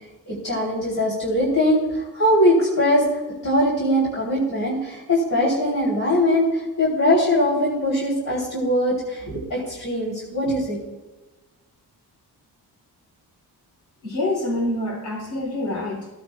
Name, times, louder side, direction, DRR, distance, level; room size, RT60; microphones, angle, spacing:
voice 1, 0.3-3.0 3.4-10.8, left 1 dB, 50° left, -6 dB, 3.1 m, -21 dB
voice 2, 14.0-16.1, left 1 dB, 70° left, -1 dB, 3.1 m, -26 dB
15.5 x 9.3 x 2.3 m, 1.2 s
cardioid pair, 95°, 40 cm